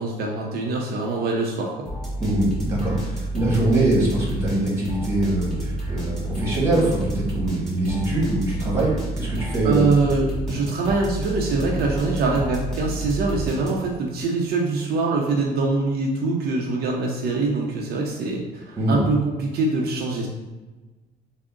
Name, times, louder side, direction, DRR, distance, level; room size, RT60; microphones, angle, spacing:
voice 1, 0.0-1.9 9.6-20.3, right 3 dB, 70° right, -1 dB, 0.6 m, -24 dB
sound 1, 1.9-14.1, right 2 dB, 5° left, 1.4 m, -30 dB
voice 2, 2.2-9.9 18.8-19.0, right 1 dB, 15° right, -4 dB, 1.3 m, -23 dB
3.6 x 2.0 x 3.7 m, 1.2 s
cardioid pair, 110°, 17 cm